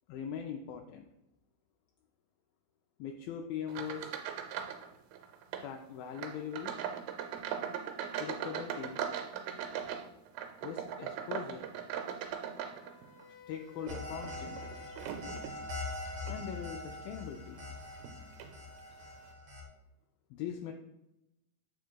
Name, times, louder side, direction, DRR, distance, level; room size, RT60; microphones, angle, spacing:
voice 1, 0.1-1.1 3.0-4.2 5.6-6.8 8.2-9.0 10.6-11.7 13.5-14.6 16.3-17.6 20.3-20.7, left 8 dB, 80° left, 3 dB, 2.2 m, -41 dB
sound 1, 3.7-4.9 5.1-5.7 6.2-13.2 13.8-15.6 16.2-16.4 17.0-17.1 18.0-18.1 18.4-18.6, right 8 dB, 85° right, 2.4 m, -39 dB
Wind instrument woodwind instrument, 12.6-16.6, left 6 dB, 65° left, 2.2 m, -55 dB
sound 2, 13.9-19.6, left 2 dB, 40° right, 2.2 m, -43 dB
9.1 x 6.1 x 2.2 m, 0.89 s
omnidirectional pair, 4.2 m